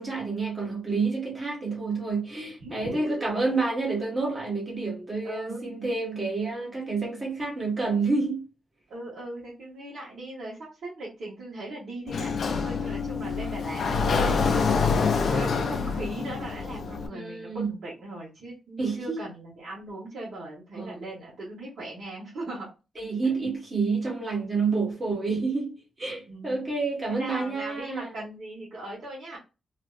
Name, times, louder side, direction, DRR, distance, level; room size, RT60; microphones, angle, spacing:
voice 1, 0.0-8.5 17.1-17.7 18.8-19.2 20.7-21.0 23.0-28.1, right 4 dB, 25° right, 1.5 m, -29 dB
voice 2, 2.6-3.5 5.2-5.7 8.9-12.3 12.6-14.0 14.4-14.7 15.1-22.7 23.2-23.3 26.3-26.6 27.1-29.4, right 2 dB, 60° right, 1.7 m, -39 dB
Sliding door, 12.1-17.1, left 5 dB, 50° left, 0.4 m, -26 dB
3.2 x 2.9 x 2.5 m
wide cardioid pair, 170°, 0 cm